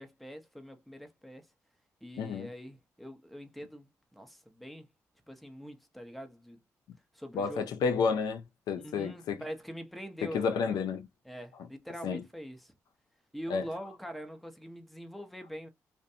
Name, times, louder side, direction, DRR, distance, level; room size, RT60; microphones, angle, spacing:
voice 1, 0.0-1.5 2.0-4.9 5.3-6.6 7.1-7.7 8.8-10.8 11.2-12.7 13.3-15.7, equal, ahead, 0.7 m, -44 dB
voice 2, 2.2-2.5 7.3-9.4 10.3-11.1 12.0-12.2 13.5-13.6, left 5 dB, 85° left, 0.4 m, -30 dB
2.5 x 2.2 x 2.6 m
cardioid pair, 65°, 7 cm